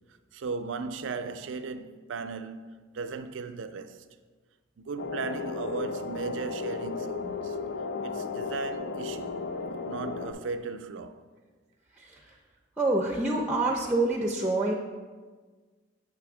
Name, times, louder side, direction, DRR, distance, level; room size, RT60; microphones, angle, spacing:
voice 1, 0.3-4.1 4.8-7.6 8.0-9.4 9.8-11.3, right 4 dB, 85° right, 0.4 m, -37 dB
sound 1, 5.0-10.3, left 4 dB, 75° left, 0.4 m, -34 dB
voice 2, 11.9-12.4 12.8-14.7, right 2 dB, 10° right, 0.4 m, -27 dB
6.3 x 3.4 x 5.9 m
head